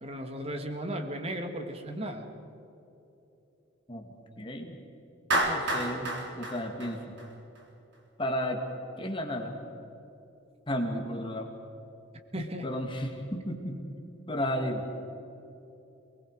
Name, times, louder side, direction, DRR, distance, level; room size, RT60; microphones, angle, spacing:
voice 1, 0.0-2.3 12.3-12.7, right 1 dB, 30° right, 5 dB, 2.0 m, -35 dB
voice 2, 3.9-4.8 5.3-7.2 8.2-8.6 9.0-9.6 10.7-11.5 12.6-13.8 14.3-15.0, equal, 25° left, 2 dB, 2.4 m, -33 dB
Clapping, 5.3-7.6, right 1 dB, 55° right, 3.7 m, -30 dB
28.5 x 21.0 x 5.0 m, 2.9 s
head